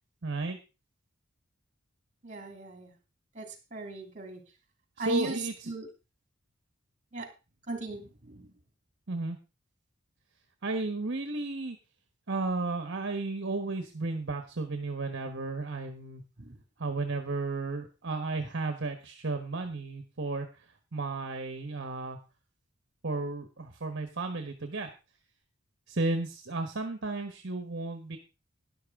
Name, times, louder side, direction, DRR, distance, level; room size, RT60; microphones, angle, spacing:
voice 1, 0.2-0.6 5.0-5.7 9.1-9.4 10.6-11.8 12.3-16.2 16.8-20.6 20.9-22.2 23.0-24.9 25.9-28.2, right 3 dB, 60° right, 7 dB, 1.3 m, -33 dB
voice 2, 2.2-2.9 3.3-4.4 5.0-5.9 7.1-7.3 7.7-8.5 16.4-16.6, right 3 dB, 40° right, 5 dB, 3.0 m, -37 dB
12.5 x 11.0 x 3.7 m, 0.30 s
head